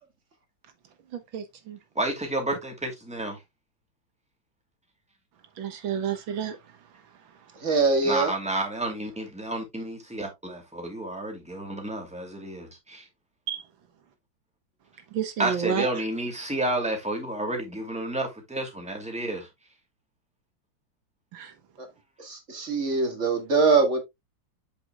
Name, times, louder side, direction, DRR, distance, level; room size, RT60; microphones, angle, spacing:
voice 1, 1.3-1.8 5.6-6.6 13.5-13.6 15.1-15.9 21.3-21.5, right 8 dB, 85° right, 1.9 m, -30 dB
voice 2, 2.0-3.4 8.0-13.1 15.4-19.5, right 2 dB, 5° right, 2.4 m, -30 dB
voice 3, 7.6-8.3 21.8-21.9 22.2-24.0, right 4 dB, 40° right, 2.0 m, -23 dB
7.8 x 7.1 x 2.3 m
omnidirectional pair, 2.1 m